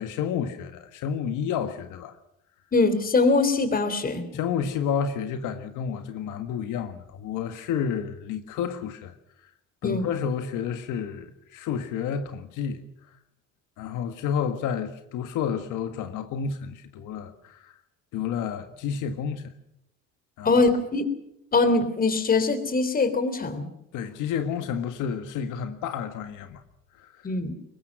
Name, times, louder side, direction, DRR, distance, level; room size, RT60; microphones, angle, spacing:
voice 1, 0.0-2.1 4.3-9.1 9.8-12.8 13.8-17.8 18.1-19.5 20.4-20.6 23.9-26.6 26.9-27.3, left 7 dB, 75° left, 1.7 m, -30 dB
voice 2, 2.7-4.2 9.8-10.1 20.4-21.0 21.5-23.7 27.2-27.5, left 3 dB, 30° left, 3.4 m, -22 dB
23.5 x 20.5 x 6.1 m
cardioid pair, 130°, 31 cm